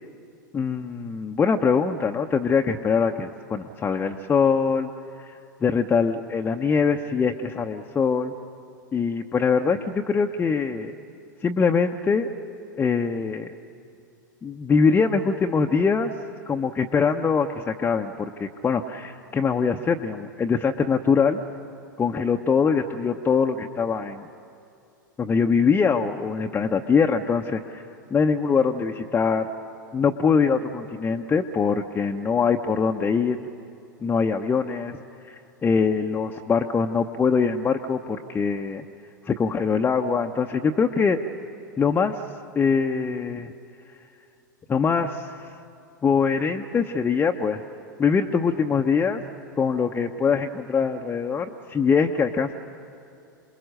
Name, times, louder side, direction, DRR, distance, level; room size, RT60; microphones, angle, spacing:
voice 1, 0.5-4.9 5.2-5.3 5.6-8.3 8.9-11.0 11.4-12.3 12.8-13.5 14.4-16.1 16.5-21.4 22.0-24.3 25.2-27.8 28.1-29.5 29.9-33.4 34.0-35.0 35.3-38.8 39.3-41.2 41.8-42.2 42.6-43.5 44.7-45.5 46.0-47.6 48.0-49.2 49.6-52.5, left 5 dB, 15° left, 2 dB, 0.7 m, -23 dB
28.0 x 21.0 x 6.5 m, 2.6 s
figure-of-eight pair, 90°, 11 cm